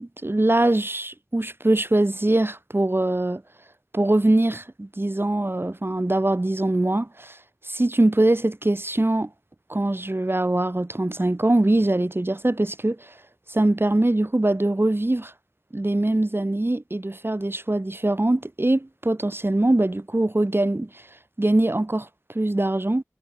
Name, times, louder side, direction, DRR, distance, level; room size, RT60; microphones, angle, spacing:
voice 1, 0.0-3.4 3.9-7.4 7.6-9.3 9.7-13.1 13.5-15.3 15.7-20.9 21.4-22.1 22.3-23.0, right 1 dB, 40° right, 4.8 m, -22 dB
wide cardioid pair, 40°, 6 cm